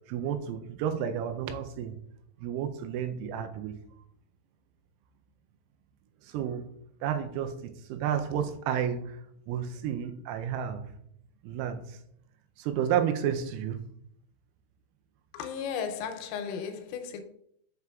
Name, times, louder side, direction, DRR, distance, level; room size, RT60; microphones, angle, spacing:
voice 1, 0.1-2.0 2.4-3.8 6.2-6.7 7.0-10.9 11.4-12.0 12.6-13.9, right 9 dB, 85° right, 3.1 m, -31 dB
voice 2, 15.3-17.2, left 7 dB, 85° left, 3.2 m, -35 dB
7.4 x 5.7 x 2.3 m
omnidirectional pair, 5.9 m